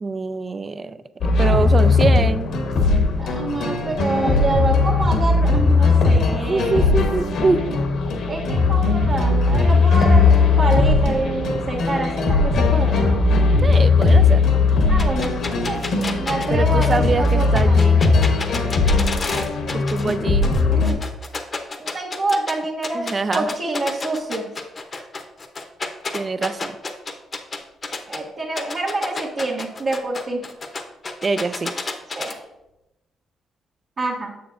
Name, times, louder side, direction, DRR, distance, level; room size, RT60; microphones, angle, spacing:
voice 1, 0.0-2.5 6.5-7.7 13.6-14.4 16.5-18.0 19.7-20.5 22.9-23.5 26.1-26.7 31.2-31.7, right 4 dB, 35° right, 13 dB, 0.4 m, -24 dB
sound 1, 1.2-20.9, left 3 dB, 70° left, 0.9 m, -18 dB
voice 2, 3.2-7.0 8.3-13.1 14.9-17.9 20.7-21.0 21.8-24.5 28.1-30.4 32.1-32.4 34.0-34.3, right 2 dB, 50° right, -5 dB, 1.3 m, -27 dB
sound 2, 15.0-20.2 20.4-22.5 22.8-28.2 28.6-32.3, left 3 dB, 35° left, 0.7 m, -30 dB
6.8 x 6.8 x 2.5 m, 0.93 s
cardioid pair, 90°, 0 cm